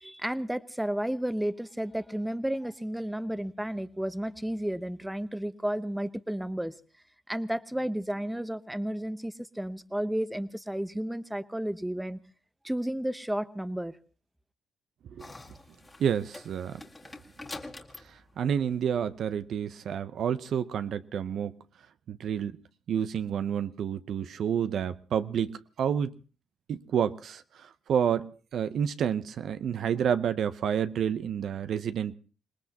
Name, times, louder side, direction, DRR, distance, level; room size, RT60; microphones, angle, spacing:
voice 1, 0.0-6.7 7.3-12.2 12.6-13.9, right 1 dB, 5° right, 0.8 m, -32 dB
sound 1, 15.2-19.5, left 2 dB, 15° left, 1.9 m, -46 dB
voice 2, 16.0-16.8 18.4-21.5 22.1-22.6 22.9-26.1 26.7-32.1, right 8 dB, 65° right, 0.7 m, -29 dB
26.5 x 19.0 x 2.9 m
cardioid pair, 90°, 0 cm